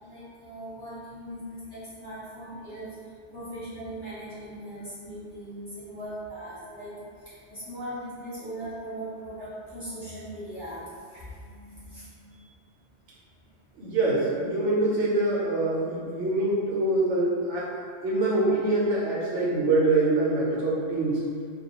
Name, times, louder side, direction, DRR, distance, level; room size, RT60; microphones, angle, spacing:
voice 1, 0.0-2.9 3.3-12.5, right 1 dB, 25° left, -13 dB, 0.7 m, -39 dB
voice 2, 13.8-17.7 18.0-21.2, right 2 dB, 80° right, -6 dB, 1.0 m, -24 dB
2.2 x 2.2 x 2.8 m, 2.2 s
omnidirectional pair, 1.2 m